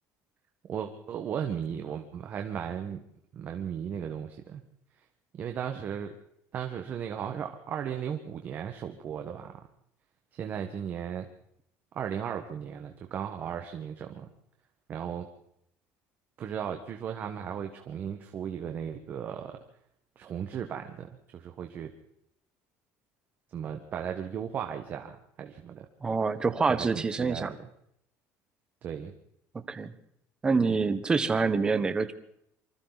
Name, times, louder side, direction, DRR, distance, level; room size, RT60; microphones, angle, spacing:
voice 1, 0.7-3.0 3.3-4.6 5.3-6.1 6.5-9.6 10.3-11.3 11.9-14.3 14.9-15.3 16.4-19.6 20.2-21.9 23.5-25.9 26.7-27.6 28.8-29.1, right 8 dB, 35° right, 5 dB, 1.5 m, -36 dB
voice 2, 26.0-27.5 29.5-29.9 30.4-32.1, right 4 dB, 15° right, 11 dB, 1.1 m, -26 dB
26.5 x 25.5 x 4.1 m, 0.73 s
cardioid pair, 170°, 6 cm